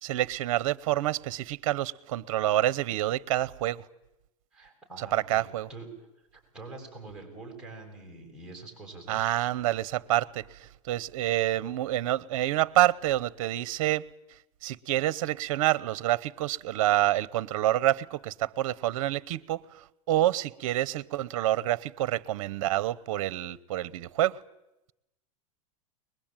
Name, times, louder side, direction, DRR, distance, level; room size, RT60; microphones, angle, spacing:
voice 1, 0.0-3.8 5.0-5.7 9.1-14.1 14.6-24.4, right 14 dB, 65° right, 0.9 m, -27 dB
voice 2, 4.5-5.9 6.3-9.2, right 3 dB, 5° right, 6.8 m, -45 dB
23.0 x 21.0 x 9.0 m
supercardioid pair, 150°, 18 cm